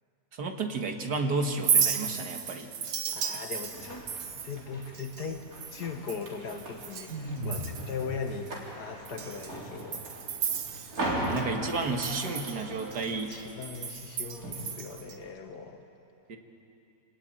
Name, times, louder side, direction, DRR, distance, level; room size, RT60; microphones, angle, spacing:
voice 1, 0.3-2.7 11.1-13.4 16.3-16.4, right 3 dB, 75° right, 4 dB, 2.2 m, -32 dB
Chink clink, 1.5-7.2 7.4-8.0 8.5-8.6 9.0-11.4 11.7-15.1, right 7 dB, 90° right, 1.8 m, -33 dB
voice 2, 3.1-4.1 4.4-5.5 5.7-8.5 8.8-10.0 13.3-15.8, left 5 dB, 75° left, 5 dB, 2.2 m, -39 dB
sound 1, 3.6-15.3, right 1 dB, 55° right, 4.3 m, -40 dB
sound 2, 7.1-8.0, right 1 dB, 40° right, 1.9 m, -35 dB
26.5 x 19.0 x 9.0 m, 2.8 s
omnidirectional pair, 1.8 m